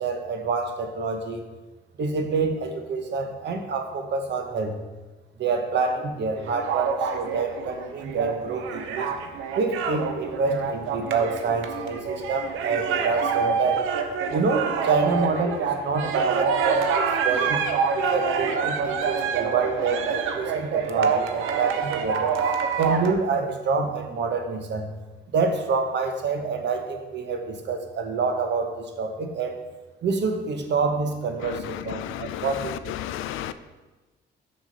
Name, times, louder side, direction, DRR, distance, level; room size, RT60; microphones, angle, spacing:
voice 1, 0.0-1.4 2.0-4.7 5.4-9.2 9.6-13.8 14.3-17.6 17.9-22.3 22.8-24.9 25.3-29.6 30.0-33.0, right 4 dB, 60° right, 5 dB, 1.0 m, -27 dB
sound 1, 6.4-23.1, right 6 dB, 90° right, 0.6 m, -26 dB
voice 2, 31.4-33.5, left 12 dB, 90° left, 12 dB, 0.4 m, -33 dB
6.3 x 6.1 x 3.9 m, 1.2 s
cardioid pair, 90°, 20 cm